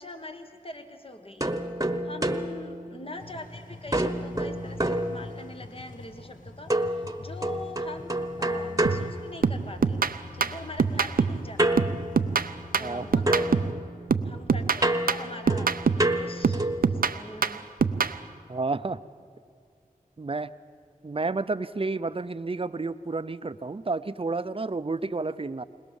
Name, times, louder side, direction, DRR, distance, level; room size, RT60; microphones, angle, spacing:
voice 1, 0.0-1.5 2.0-10.1 10.3-11.8 12.7-13.7 14.2-17.6, left 2 dB, 40° left, 6 dB, 1.7 m, -43 dB
sound 1, 1.4-3.5 3.9-5.8 6.7-9.9 11.6-13.0 13.3-16.9, right 1 dB, 25° right, 1.2 m, -29 dB
sound 2, 3.2-13.7, left 3 dB, 65° left, 1.2 m, -45 dB
sound 3, 8.9-9.1 9.4-11.5 11.8-13.8 14.1-16.1 16.4-18.2, right 5 dB, 85° right, 0.6 m, -25 dB
voice 2, 12.8-13.2 18.5-19.0 20.2-20.5 21.0-25.6, right 3 dB, 40° right, 14 dB, 0.7 m, -30 dB
21.0 x 20.5 x 7.2 m, 2.3 s
wide cardioid pair, 45°, 15 cm